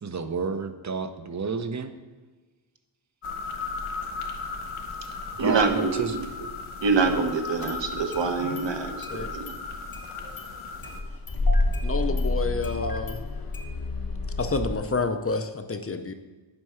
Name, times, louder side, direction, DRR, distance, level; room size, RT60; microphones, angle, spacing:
voice 1, 0.0-1.9 5.4-6.2, right 5 dB, 35° right, 10 dB, 0.5 m, -30 dB
sound 1, 3.2-11.0, left 4 dB, 85° left, 0.9 m, -36 dB
voice 2, 5.4-6.2 6.8-9.5, right 4 dB, 65° right, 6 dB, 0.9 m, -25 dB
Engine starting, 6.2-6.3 7.6-8.2 8.6-8.7 9.0-9.1 9.5-9.6 9.9-10.5 10.8-14.8, left 2 dB, 45° left, 0.9 m, -28 dB
voice 3, 11.8-13.2 14.4-16.1, left 4 dB, 30° left, 8 dB, 0.5 m, -29 dB
7.8 x 4.6 x 5.6 m, 1.3 s
wide cardioid pair, 70°, 48 cm